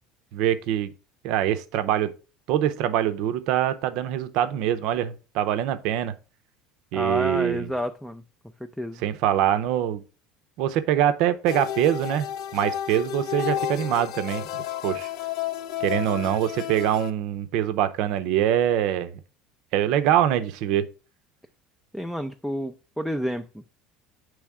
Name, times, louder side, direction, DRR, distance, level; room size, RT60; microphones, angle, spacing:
voice 1, 0.3-0.9 1.2-2.1 2.5-6.2 6.9-7.7 9.0-10.0 10.6-12.3 12.5-14.5 14.8-15.1 15.8-19.1 19.7-20.9, right 11 dB, 65° right, 0.6 m, -24 dB
voice 2, 6.9-8.2 8.8-9.0 21.9-23.6, equal, ahead, 0.3 m, -30 dB
sound 1, 11.5-17.1, left 11 dB, 60° left, 0.4 m, -31 dB
8.3 x 3.2 x 3.5 m
cardioid pair, 135°, 0 cm